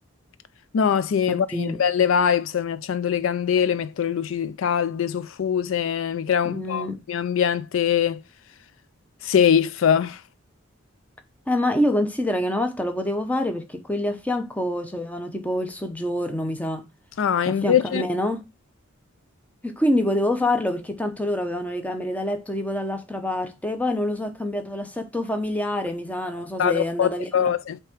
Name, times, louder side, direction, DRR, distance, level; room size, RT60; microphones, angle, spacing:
voice 1, 0.7-8.2 9.2-10.2 17.2-18.0 26.6-27.8, left 8 dB, 70° left, 0.4 m, -22 dB
voice 2, 1.3-1.8 6.4-7.0 11.5-16.8 17.5-18.5 19.6-27.5, left 1 dB, 5° left, 0.8 m, -26 dB
5.7 x 3.5 x 4.9 m
head